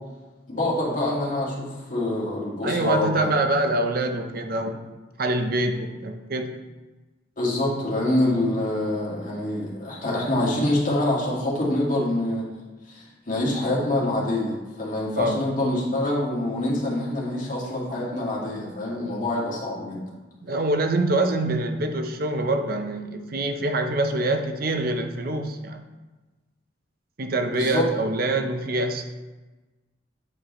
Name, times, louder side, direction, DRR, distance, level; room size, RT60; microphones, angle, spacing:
voice 1, 0.5-3.4 7.4-20.0 27.5-27.9, left 1 dB, 45° left, -5 dB, 1.8 m, -26 dB
voice 2, 2.6-4.8 5.2-6.6 15.2-15.4 20.4-25.8 27.2-29.2, right 2 dB, 50° right, 6 dB, 0.6 m, -25 dB
8.8 x 4.7 x 3.1 m, 1.2 s
head